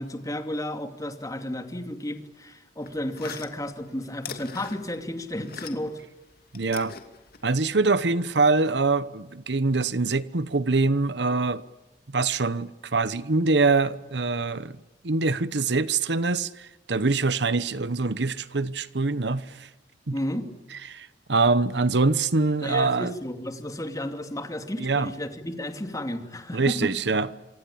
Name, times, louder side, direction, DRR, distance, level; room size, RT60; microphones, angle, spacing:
voice 1, 0.0-6.0 20.1-20.5 22.6-26.9, left 1 dB, 20° left, 2.6 m, -32 dB
sound 1, 2.8-6.0 6.3-7.8, left 6 dB, 55° left, 2.6 m, -42 dB
voice 2, 6.5-6.9 7.4-11.6 12.1-14.8 15.0-19.7 20.1-20.2 20.9-23.1 24.8-25.1 26.5-27.3, right 3 dB, 70° right, 1.0 m, -24 dB
27.0 x 25.5 x 8.6 m
head